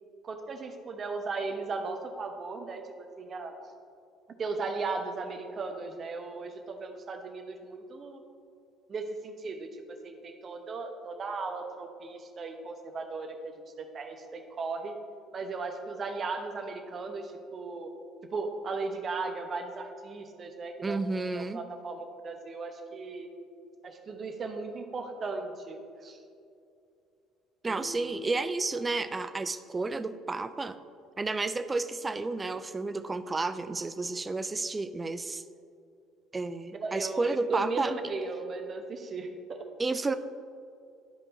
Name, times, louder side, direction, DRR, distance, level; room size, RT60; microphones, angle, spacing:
voice 1, 0.2-3.5 4.4-8.2 8.9-14.9 15.3-17.9 18.3-21.0 21.3-23.3 23.8-26.2 27.7-28.4 36.8-39.6, right 3 dB, 40° right, 5 dB, 0.9 m, -37 dB
voice 2, 20.8-21.6 27.6-30.8 31.2-35.4 36.3-37.9 39.8-40.2, right 3 dB, 25° right, 12 dB, 0.4 m, -31 dB
12.0 x 5.3 x 2.8 m, 2.5 s
hypercardioid pair, 55°, 0 cm